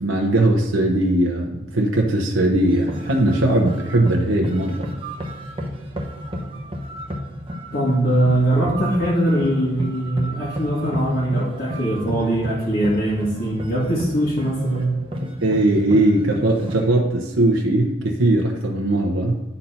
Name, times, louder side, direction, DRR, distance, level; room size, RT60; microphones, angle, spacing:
voice 1, 0.0-4.9 15.2-19.4, right 1 dB, 85° right, 1 dB, 1.0 m, -19 dB
sound 1, 2.6-16.8, equal, 25° right, 0.9 m, -32 dB
voice 2, 7.7-15.0, right 1 dB, 45° left, -7 dB, 1.8 m, -21 dB
10.0 x 4.1 x 5.8 m, 0.98 s
head